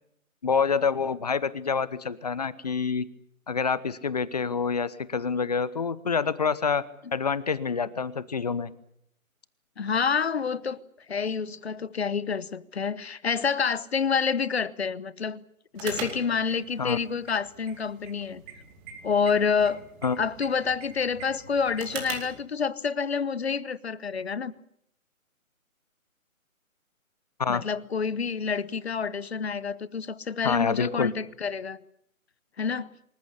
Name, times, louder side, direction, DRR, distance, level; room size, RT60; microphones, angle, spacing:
voice 1, 0.4-3.0 3.5-6.8 7.1-8.7 16.8-17.0 20.0-20.2 27.4-27.6 30.4-31.1, left 5 dB, 30° left, 0.9 m, -27 dB
voice 2, 9.8-10.8 11.1-15.4 15.7-18.4 19.0-19.8 20.2-24.5 27.5-31.8 32.6-32.9, left 6 dB, 50° left, 1.0 m, -28 dB
sound 1, 15.7-22.4, right 6 dB, 10° right, 2.7 m, -42 dB
26.0 x 14.5 x 9.8 m
figure-of-eight pair, 160°, 42 cm